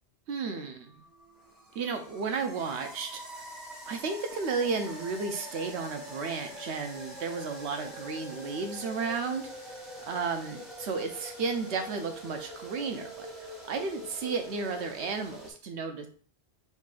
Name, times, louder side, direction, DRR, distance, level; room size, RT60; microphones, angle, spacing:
voice 1, 0.3-1.0 1.7-3.5 3.9-9.5 10.1-16.1, right 4 dB, 70° right, 5 dB, 0.8 m, -33 dB
sound 1, 0.8-15.5, equal, ahead, 1.1 m, -44 dB
4.1 x 3.7 x 2.4 m, 0.43 s
omnidirectional pair, 1.2 m